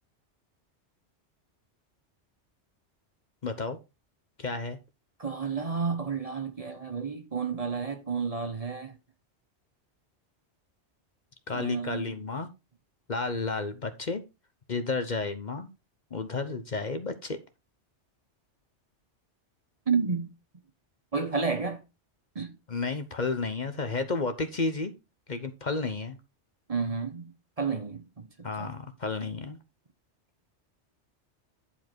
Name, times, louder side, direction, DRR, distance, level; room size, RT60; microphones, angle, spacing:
voice 1, 3.4-3.8 4.4-4.8 11.5-12.5 13.1-14.2 14.7-15.7 16.1-17.4 22.7-24.9 25.3-26.2 28.4-29.6, left 3 dB, 45° left, 0.9 m, -32 dB
voice 2, 5.2-9.0 11.5-12.1 19.9-20.3 21.1-21.8 22.3-22.6 26.7-28.7, right 5 dB, 35° right, 1.0 m, -31 dB
10.5 x 4.9 x 4.4 m
omnidirectional pair, 1.2 m